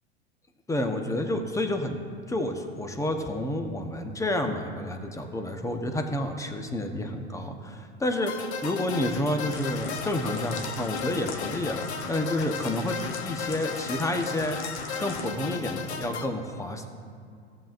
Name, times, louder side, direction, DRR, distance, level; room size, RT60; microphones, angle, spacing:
voice 1, 0.7-2.0 2.3-8.3 8.6-14.6 15.0-16.9, left 1 dB, 10° left, 5 dB, 0.9 m, -29 dB
sound 1, 8.3-16.3, left 6 dB, 75° left, 0.9 m, -36 dB
sound 2, 9.5-15.3, left 5 dB, 40° left, 1.1 m, -40 dB
16.0 x 7.7 x 2.6 m, 2.3 s
hypercardioid pair, 85°, 33 cm